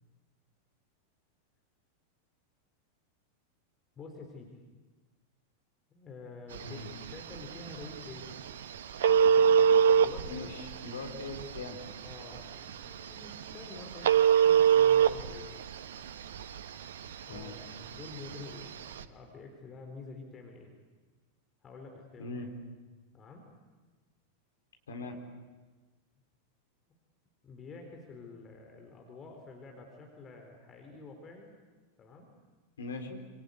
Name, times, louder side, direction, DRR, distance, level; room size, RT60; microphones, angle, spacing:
voice 1, 4.0-4.6 5.9-8.5 9.2-9.6 9.9-10.5 10.8-11.0 12.0-14.2 14.4-15.6 17.3-20.7 21.6-22.4 23.1-23.5 27.4-31.5 32.0-32.3, left 3 dB, 25° left, 2 dB, 4.2 m, -48 dB
Telephone, 6.5-19.0, right 8 dB, 60° right, 1.1 m, -27 dB
voice 2, 10.3-11.8 17.3-17.6 22.2-22.5 24.9-25.2 32.8-33.2, left 3 dB, 65° left, 3 dB, 4.0 m, -40 dB
27.0 x 25.5 x 8.3 m, 1.3 s
figure-of-eight pair, 90°, 0 cm